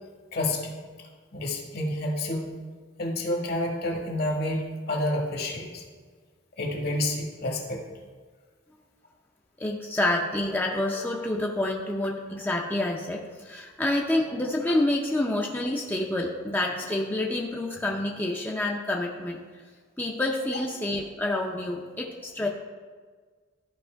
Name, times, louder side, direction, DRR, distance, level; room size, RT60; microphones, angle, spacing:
voice 1, 0.3-0.7 1.3-2.5 3.0-5.8 6.6-7.8, left 1 dB, 55° left, 0 dB, 1.5 m, -29 dB
voice 2, 9.6-19.4 20.0-22.5, left 1 dB, 10° left, -1 dB, 0.6 m, -28 dB
13.5 x 5.4 x 3.4 m, 1.5 s
head